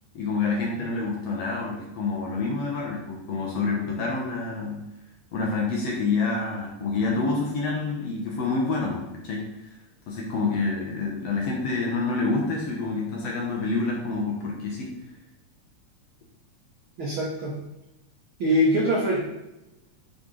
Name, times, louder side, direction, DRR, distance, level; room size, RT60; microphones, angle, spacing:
voice 1, 0.1-4.8 5.3-9.7 10.1-14.9, left 3 dB, 65° left, -2 dB, 1.7 m, -27 dB
voice 2, 17.0-17.5 18.4-19.2, equal, 75° right, -3 dB, 1.1 m, -23 dB
8.8 x 4.0 x 3.1 m, 0.95 s
omnidirectional pair, 3.7 m